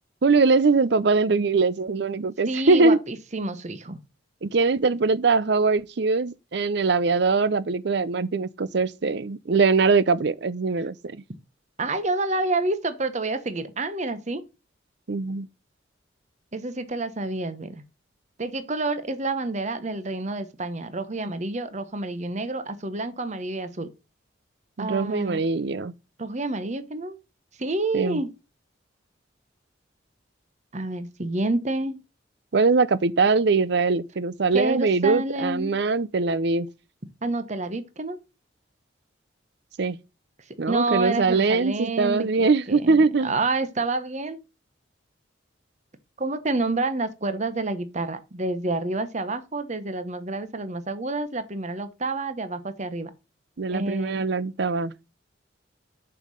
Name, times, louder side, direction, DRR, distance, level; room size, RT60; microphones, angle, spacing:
voice 1, 0.2-3.0 4.4-11.2 15.1-15.5 24.8-25.9 27.9-28.2 32.5-36.7 39.8-40.0 40.6-43.3 53.6-55.0, right 4 dB, 60° right, 0.6 m, -22 dB
voice 2, 2.5-4.0 11.8-14.4 16.5-17.8 18.4-23.9 24.8-25.5 26.2-27.2 27.6-28.3 30.7-32.0 34.5-35.8 37.2-38.2 40.7-44.4 46.2-53.1 53.7-54.2, right 2 dB, 40° right, 1.1 m, -28 dB
6.9 x 5.7 x 6.3 m
head